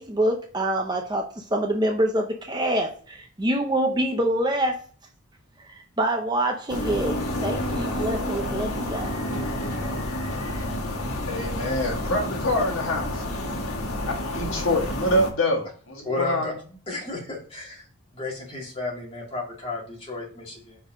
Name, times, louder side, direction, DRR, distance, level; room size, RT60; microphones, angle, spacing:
voice 1, 0.0-4.8 5.7-9.2, right 1 dB, 20° right, 3 dB, 0.7 m, -26 dB
sound 1, 6.7-15.3, left 1 dB, 75° left, 1.4 m, -29 dB
voice 2, 11.3-13.2 14.3-16.5, left 1 dB, 60° left, 0 dB, 1.8 m, -25 dB
voice 3, 16.0-16.5 16.9-17.9 18.1-20.8, left 2 dB, 25° left, -3 dB, 2.2 m, -32 dB
5.3 x 4.6 x 5.1 m, 0.43 s
head